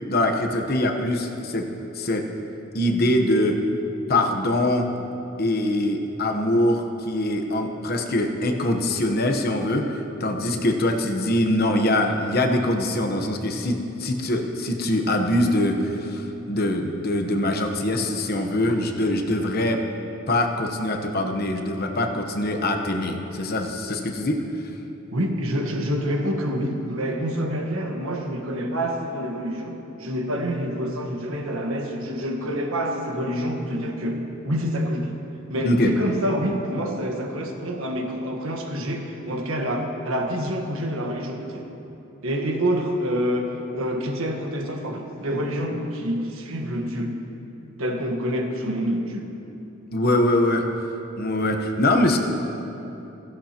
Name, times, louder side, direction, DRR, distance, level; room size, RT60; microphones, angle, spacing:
voice 1, 0.1-1.7 1.9-2.3 2.7-3.6 4.1-4.9 5.4-19.8 20.3-24.4 35.6-35.9 49.9-50.7 51.2-52.2, left 1 dB, 45° left, 4 dB, 1.0 m, -23 dB
voice 2, 25.1-35.2 35.5-41.7 42.2-47.1 47.8-49.3, equal, 80° right, 3 dB, 1.4 m, -27 dB
16.5 x 15.5 x 2.9 m, 2.9 s
head